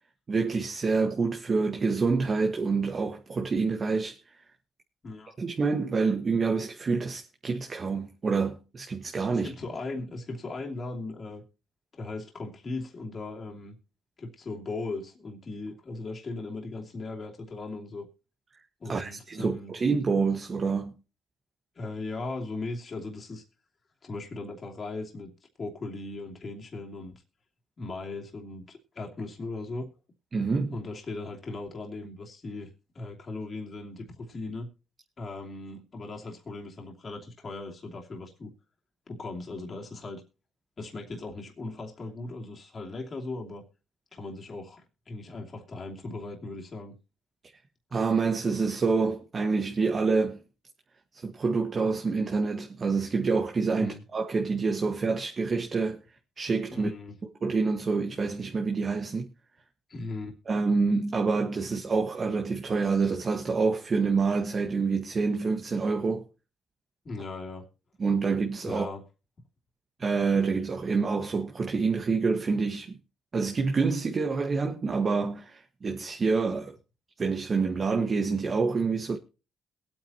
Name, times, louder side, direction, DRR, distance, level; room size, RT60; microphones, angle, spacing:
voice 1, 0.3-4.2 5.4-9.5 18.9-20.9 30.3-30.8 47.9-50.4 51.1-56.0 56.4-56.9 57.4-59.3 60.5-66.2 68.0-68.9 70.0-73.0 73.3-76.7 77.2-79.2, right 4 dB, 40° right, 1.5 m, -27 dB
voice 2, 5.0-5.3 9.3-11.4 11.9-13.8 14.2-18.1 18.8-19.7 21.7-23.4 24.0-25.3 25.6-27.2 27.8-29.9 30.7-32.7 32.9-34.7 35.2-38.5 39.1-40.2 40.8-43.6 44.1-46.9 53.7-54.0 56.7-57.2 59.9-60.4 67.0-67.7 68.6-69.0, left 3 dB, 40° left, 2.8 m, -38 dB
22.0 x 8.9 x 2.9 m
cardioid pair, 90°, 0 cm